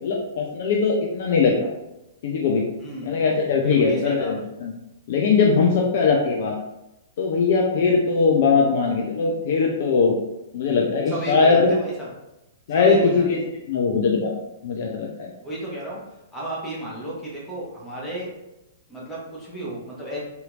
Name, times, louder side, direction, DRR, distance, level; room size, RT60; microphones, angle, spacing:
voice 1, 0.0-1.6 2.2-2.6 3.0-4.7 5.1-6.5 7.2-10.1 10.5-11.7 12.7-13.4 13.7-14.3 14.6-15.3, left 5 dB, 50° left, 0 dB, 0.4 m, -20 dB
voice 2, 2.8-3.2 3.6-4.3 11.1-12.1 12.7-13.4 15.4-18.3 18.9-20.2, right 1 dB, 10° left, -5 dB, 0.9 m, -33 dB
2.8 x 2.6 x 2.3 m, 0.92 s
figure-of-eight pair, 105°, 0 cm